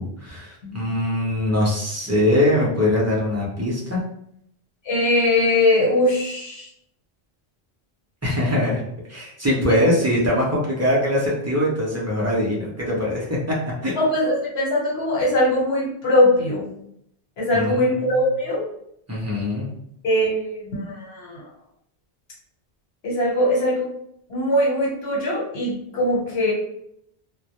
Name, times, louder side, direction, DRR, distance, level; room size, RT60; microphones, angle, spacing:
voice 1, 0.0-4.0 8.2-8.8 9.1-13.5 13.8-13.9 17.5-18.2 19.1-19.7, left 1 dB, 25° right, -5 dB, 0.3 m, -22 dB
voice 2, 4.8-6.7 9.7-9.8 14.0-16.7 17.4-18.6 20.0-21.4 23.0-23.9 24.3-26.5, left 1 dB, 75° left, -5 dB, 1.1 m, -21 dB
2.1 x 2.1 x 2.8 m, 0.73 s
omnidirectional pair, 1.1 m